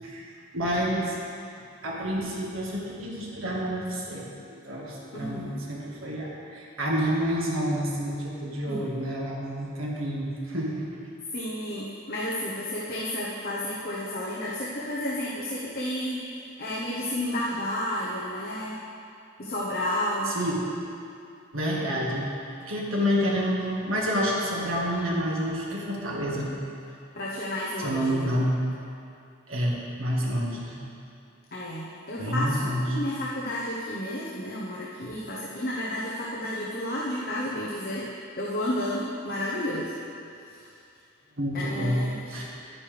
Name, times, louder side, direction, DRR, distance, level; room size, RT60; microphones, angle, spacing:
voice 1, 0.5-1.1 1.8-4.3 4.5-10.8 20.3-20.6 21.5-22.3 22.6-26.5 27.8-28.6 29.5-30.8 32.2-33.0 35.0-35.1 41.4-42.0 42.3-42.5, equal, 90° right, -3 dB, 1.8 m, -28 dB
voice 2, 5.1-5.6 8.7-8.9 11.3-18.8 19.4-20.3 27.1-28.4 31.5-38.1 38.4-39.9 40.4-40.7 41.5-42.1, left 1 dB, 50° left, -6 dB, 1.1 m, -31 dB
11.5 x 9.7 x 3.5 m, 2.5 s
head